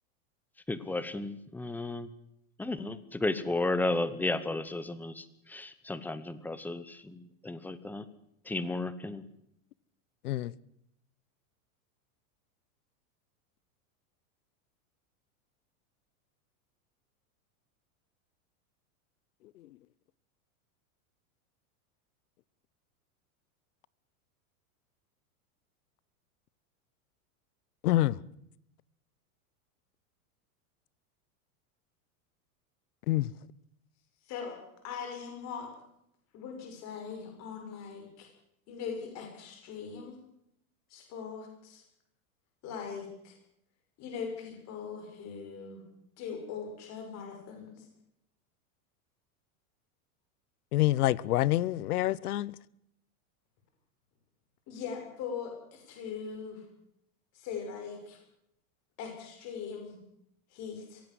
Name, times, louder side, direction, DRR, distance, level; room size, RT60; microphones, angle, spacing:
voice 1, 0.7-2.1 2.6-8.1 8.4-9.3, left 2 dB, 5° left, 0.9 m, -33 dB
voice 2, 27.8-28.2 33.1-33.3 50.7-52.5, left 15 dB, 80° left, 1.0 m, -27 dB
voice 3, 34.3-34.6 34.8-35.7 36.3-38.3 38.7-40.2 40.9-41.8 42.6-43.4 44.0-45.8 46.2-47.8 54.7-56.6 57.3-58.2 59.0-60.0 60.5-61.0, left 6 dB, 35° left, 6.5 m, -40 dB
23.0 x 17.0 x 7.9 m
supercardioid pair, 155°, 45 cm